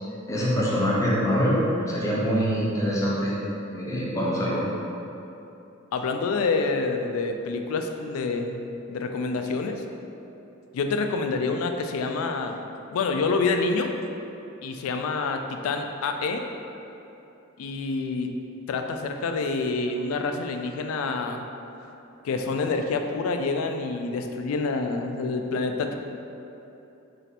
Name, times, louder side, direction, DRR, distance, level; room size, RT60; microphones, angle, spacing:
voice 1, 0.3-1.6 1.9-3.3 3.7-4.6, equal, 15° left, -6 dB, 0.6 m, -24 dB
voice 2, 5.9-9.8 10.7-12.6 12.9-13.9 14.6-16.5 17.6-18.4 18.7-21.5 22.2-25.9, left 4 dB, 85° left, 5 dB, 0.3 m, -27 dB
3.1 x 2.8 x 4.1 m, 2.9 s
head